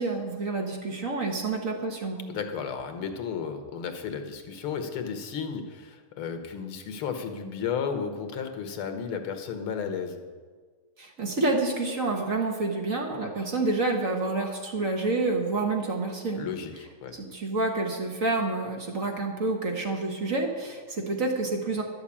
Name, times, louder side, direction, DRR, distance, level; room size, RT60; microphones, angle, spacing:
voice 1, 0.0-2.2 11.0-16.5 17.1-21.8, right 3 dB, 40° right, 1 dB, 1.6 m, -28 dB
voice 2, 2.3-10.2 16.4-17.2, left 6 dB, 80° left, 7 dB, 2.0 m, -33 dB
11.5 x 7.3 x 8.5 m, 1.5 s
omnidirectional pair, 2.3 m